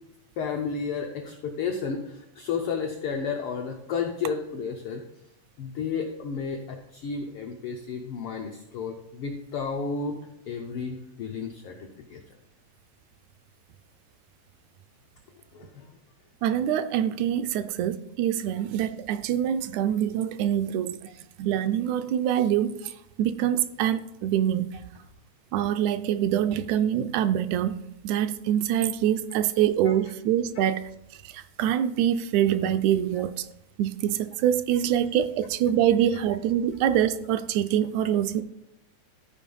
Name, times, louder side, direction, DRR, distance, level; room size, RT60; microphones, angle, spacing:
voice 1, 0.4-5.0 5.6-12.2 15.5-15.9 29.9-30.0, left 5 dB, 80° left, 3 dB, 1.2 m, -32 dB
voice 2, 16.4-21.0 21.4-22.9 23.2-24.7 25.5-30.9 31.2-33.5 33.8-38.4, right 10 dB, 80° right, 11 dB, 1.8 m, -25 dB
13.5 x 4.6 x 5.4 m, 0.83 s
omnidirectional pair, 3.5 m